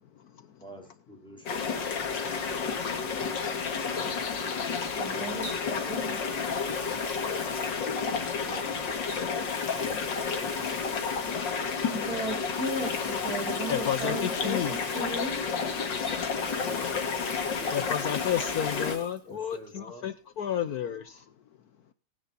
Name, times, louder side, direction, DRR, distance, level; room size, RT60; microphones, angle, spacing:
voice 1, 0.6-2.5 5.1-6.5 8.4-11.7 16.1-16.9 17.5-17.8 19.3-20.1, equal, ahead, 1 dB, 4.3 m, -48 dB
sound 1, 1.5-19.0, left 5 dB, 85° left, 2.5 m, -31 dB
Water tap faucet, 2.5-2.7 5.4-8.5 9.0-11.5 12.3-15.7 16.1-19.2 19.5-19.6 21.2-21.3, left 2 dB, 35° left, 3.6 m, -46 dB
voice 2, 4.7-5.5 5.9-6.1 11.9-15.4, right 1 dB, 55° right, 1 dB, 4.7 m, -35 dB
voice 3, 13.7-14.7 17.7-21.1, left 9 dB, 65° left, 12 dB, 1.2 m, -31 dB
19.5 x 9.5 x 2.7 m, 0.32 s
omnidirectional pair, 1.9 m